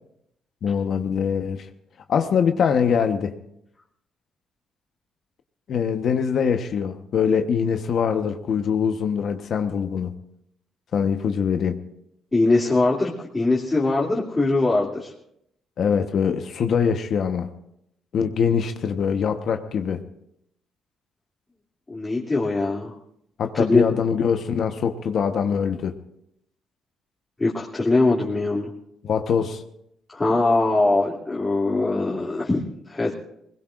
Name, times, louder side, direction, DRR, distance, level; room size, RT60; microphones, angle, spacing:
voice 1, 0.6-1.7 2.1-3.3 5.7-10.2 10.9-11.8 15.8-17.5 18.1-20.0 23.4-26.0 29.0-29.6, left 6 dB, 60° left, 6 dB, 1.1 m, -23 dB
voice 2, 12.3-15.1 21.9-22.9 23.5-23.8 27.4-28.7 30.1-33.1, left 2 dB, 20° left, -5 dB, 2.6 m, -22 dB
21.0 x 20.5 x 2.5 m, 0.76 s
cardioid pair, 90°, 0 cm